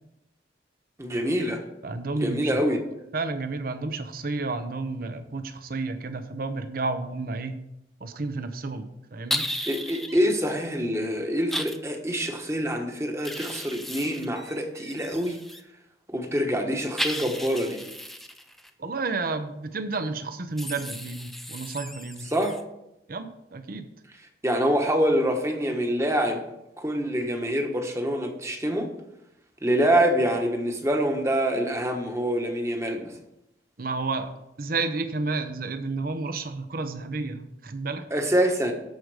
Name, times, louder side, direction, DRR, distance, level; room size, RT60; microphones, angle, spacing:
voice 1, 1.0-1.6 2.2-2.8 9.7-15.4 16.1-17.8 22.3-22.6 24.4-26.4 26.8-28.9 29.6-33.1 38.1-38.7, equal, 15° right, 4 dB, 1.2 m, -25 dB
voice 2, 1.8-2.6 3.1-7.5 8.0-9.5 18.8-22.3 23.1-23.9 33.8-34.3 34.6-38.1, right 3 dB, 55° right, 9 dB, 0.8 m, -31 dB
sound 1, 9.3-10.2 11.5-11.8 13.2-15.6 17.0-18.7 20.6-22.6, equal, ahead, 0.5 m, -34 dB
13.0 x 5.1 x 4.8 m, 0.87 s
head